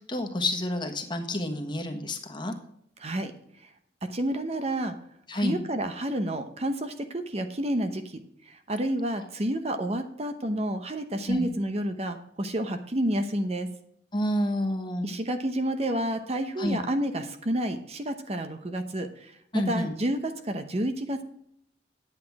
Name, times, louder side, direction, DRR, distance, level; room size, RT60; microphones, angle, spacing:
voice 1, 0.1-2.5 5.3-5.6 11.3-11.5 14.1-15.0 16.6-16.8 19.5-19.9, left 1 dB, 25° left, 4 dB, 1.3 m, -29 dB
voice 2, 3.0-3.3 3.6-3.7 4.0-4.9 5.3-13.7 15.0-19.4 19.7-21.2, right 1 dB, 35° right, 8 dB, 0.8 m, -30 dB
9.5 x 8.4 x 4.7 m, 0.71 s
head